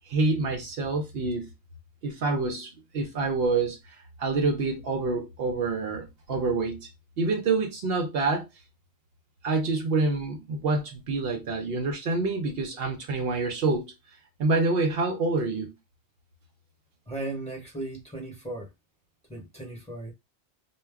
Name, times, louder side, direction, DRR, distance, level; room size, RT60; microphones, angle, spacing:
voice 1, 0.1-1.5 2.0-6.9 7.2-8.5 9.4-13.9 14.4-15.7, right 3 dB, 70° right, 0.8 m, -27 dB
voice 2, 17.1-18.7 19.3-20.1, right 2 dB, 5° left, 0.9 m, -36 dB
2.2 x 2.1 x 3.4 m
omnidirectional pair, 1.1 m